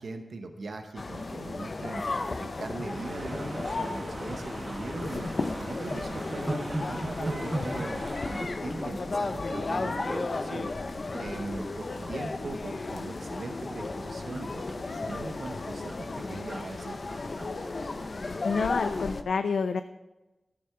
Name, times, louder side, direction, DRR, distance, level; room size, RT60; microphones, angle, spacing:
voice 1, 0.0-2.1 2.4-5.3 5.6-10.7 11.2-17.0, right 3 dB, 85° right, 6 dB, 0.8 m, -40 dB
sound 1, 1.0-19.2, left 3 dB, 65° left, 0.7 m, -34 dB
sound 2, 2.1-2.3 2.7-3.4 3.8-3.9 4.3-5.2 5.5-9.7 10.0-10.3 10.9-11.7 12.0-12.1 12.4-13.6 13.8-18.4 18.7-18.9, right 1 dB, 30° right, 1.8 m, -39 dB
sound 3, 2.9-8.4, right 2 dB, 55° right, 1.7 m, -41 dB
voice 2, 18.4-19.8, left 5 dB, 90° left, 11 dB, 0.3 m, -28 dB
12.0 x 7.6 x 5.7 m, 1.1 s
cardioid pair, 40°, 0 cm